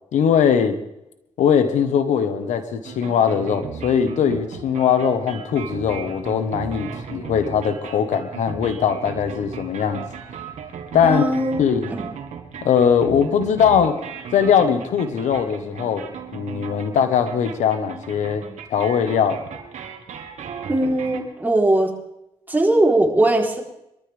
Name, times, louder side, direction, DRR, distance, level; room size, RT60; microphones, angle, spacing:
voice 1, 0.1-0.8 1.4-10.1 10.9-11.2 11.6-11.9 12.6-14.0 14.3-16.0 16.3-18.4 18.7-19.4, left 7 dB, 90° left, 9 dB, 1.4 m, -20 dB
sound 1, 2.8-21.2, right 7 dB, 80° right, 1.8 m, -36 dB
voice 2, 11.0-11.6 11.9-12.1 20.7-21.9 22.5-23.6, right 1 dB, 15° right, -1 dB, 3.9 m, -19 dB
23.0 x 13.5 x 3.6 m, 0.84 s
supercardioid pair, 55°, 12 cm